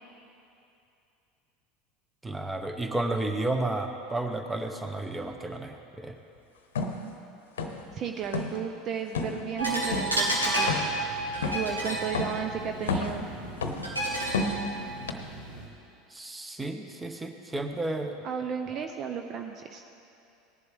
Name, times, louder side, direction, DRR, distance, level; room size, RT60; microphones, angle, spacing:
voice 1, 2.2-6.1 16.1-18.1, right 2 dB, 10° right, 6 dB, 1.0 m, -32 dB
sound 1, 6.8-7.0 7.6-7.9 8.2-8.6 9.1-9.4 9.9-10.1 10.7-11.0 11.4-11.7 12.1-12.4 12.8-13.2 13.6-13.9 14.3-14.7 15.1-15.2, left 4 dB, 70° left, 0.9 m, -30 dB
voice 2, 7.9-10.7 11.5-13.3 18.2-19.8, right 7 dB, 40° right, 5 dB, 0.6 m, -34 dB
sound 2, 9.6-15.6, right 1 dB, 85° right, 1.8 m, -31 dB
18.0 x 11.0 x 3.5 m, 2.7 s
figure-of-eight pair, 75°, 0 cm